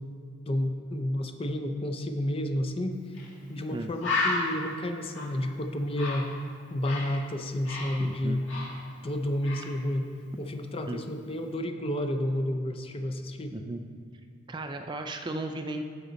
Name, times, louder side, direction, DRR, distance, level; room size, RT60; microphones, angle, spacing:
voice 1, 0.5-3.0 3.5-6.3 6.7-8.4 9.0-10.1 10.4-13.6, left 1 dB, 30° left, 6 dB, 0.6 m, -30 dB
Bird, 3.1-3.3 3.6-3.7 4.0-7.2 7.5-9.1 9.4-9.7, left 3 dB, 70° left, 2.3 m, -33 dB
voice 2, 8.0-8.4 10.9-11.0 13.5-13.8 14.5-15.8, right 2 dB, 25° right, 6 dB, 0.3 m, -35 dB
14.0 x 5.3 x 4.0 m, 2.2 s
head